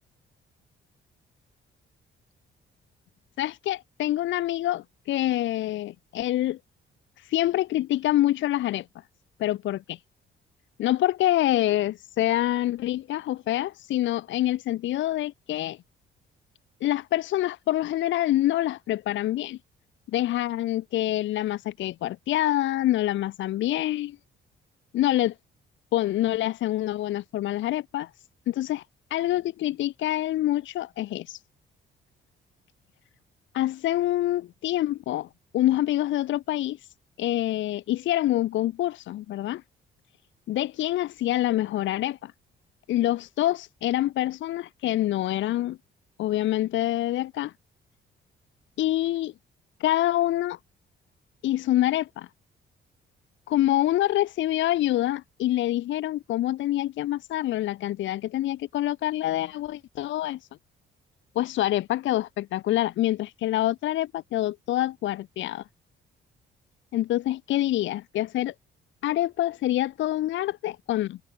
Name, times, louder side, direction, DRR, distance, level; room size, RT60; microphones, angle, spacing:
voice 1, 3.4-6.6 7.2-8.9 9.4-10.0 10.8-15.8 16.8-19.6 20.1-24.2 24.9-25.3 25.9-28.1 28.5-28.8 29.1-31.4 33.5-35.3 35.5-36.8 37.2-39.6 40.5-42.3 42.9-45.8 46.2-47.5 48.8-49.3 49.8-50.6 51.4-52.3 53.5-60.4 61.4-65.6 66.9-68.5 69.0-71.2, left 14 dB, 70° left, 0.6 m, -26 dB
cardioid pair, 90°, 20 cm